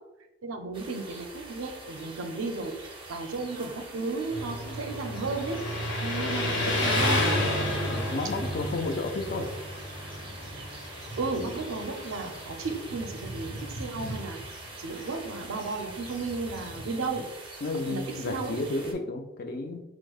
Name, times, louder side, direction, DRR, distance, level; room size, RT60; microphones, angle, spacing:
voice 1, 0.4-2.7 3.1-5.6 6.0-7.2 11.2-14.4 14.8-17.2 17.9-18.6, right 3 dB, 85° right, 5 dB, 0.5 m, -34 dB
sound 1, 0.7-18.9, right 2 dB, 25° right, 0.5 m, -45 dB
Motorcycle, 4.3-16.9, left 1 dB, 70° left, 1.4 m, -32 dB
voice 2, 7.9-9.5 16.9-17.1 17.6-19.8, left 2 dB, 45° left, 6 dB, 0.4 m, -32 dB
6.0 x 2.0 x 2.3 m, 1.0 s
head